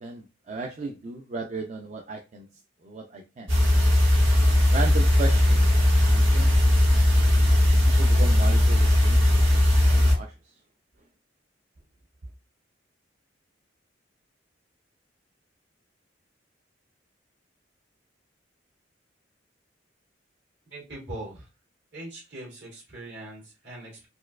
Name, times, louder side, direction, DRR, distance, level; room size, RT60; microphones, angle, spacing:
voice 1, 0.0-2.5 2.8-3.5 4.7-5.7 6.1-6.5 7.8-10.3, right 3 dB, 40° right, 2 dB, 0.4 m, -36 dB
sound 1, 3.5-10.1, left 1 dB, 85° right, 1.7 m, -19 dB
voice 2, 20.7-21.4 21.9-24.1, right 1 dB, 65° right, -2 dB, 1.9 m, -41 dB
4.3 x 2.3 x 2.3 m, 0.28 s
head